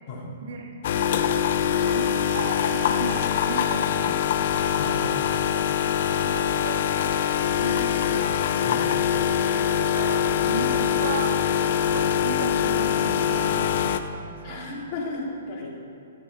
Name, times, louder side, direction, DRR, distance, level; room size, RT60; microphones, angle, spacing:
voice 1, 0.4-0.7 1.1-1.3 1.7-4.2 4.9-5.2 5.5-8.4 9.4-11.4 11.9-14.6, right 3 dB, 65° right, 1 dB, 2.5 m, -36 dB
sound 1, 0.8-14.0, left 9 dB, 55° left, 0.8 m, -23 dB
voice 2, 14.4-15.7, left 2 dB, 40° left, -3 dB, 3.5 m, -34 dB
15.5 x 13.0 x 4.2 m, 2.7 s
hypercardioid pair, 140°, 0 cm